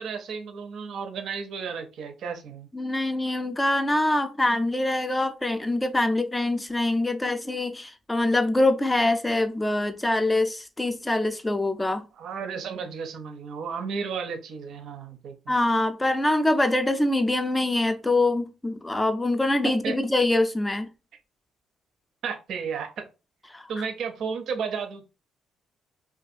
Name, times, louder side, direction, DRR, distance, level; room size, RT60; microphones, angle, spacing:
voice 1, 0.0-2.7 12.2-15.5 19.6-20.0 22.2-23.1 23.7-25.0, right 6 dB, 70° right, 0.5 m, -33 dB
voice 2, 2.7-12.0 15.5-20.9 23.5-23.7, left 2 dB, 15° left, 0.4 m, -24 dB
2.6 x 2.3 x 2.4 m
cardioid pair, 90°, 0 cm